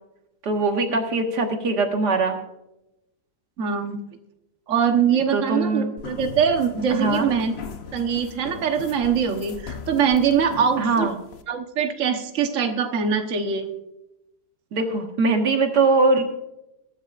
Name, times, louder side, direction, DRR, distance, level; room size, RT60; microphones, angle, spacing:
voice 1, 0.4-2.4 5.3-5.9 6.9-7.3 10.8-11.1 14.7-16.2, right 3 dB, 85° right, 4 dB, 2.2 m, -21 dB
voice 2, 3.6-4.0 4.7-7.5 7.9-11.1 11.5-13.7, right 7 dB, 50° right, 4 dB, 1.5 m, -23 dB
sound 1, 6.0-11.4, left 5 dB, 45° left, 1.0 m, -38 dB
22.0 x 10.5 x 2.5 m, 0.91 s
omnidirectional pair, 1.7 m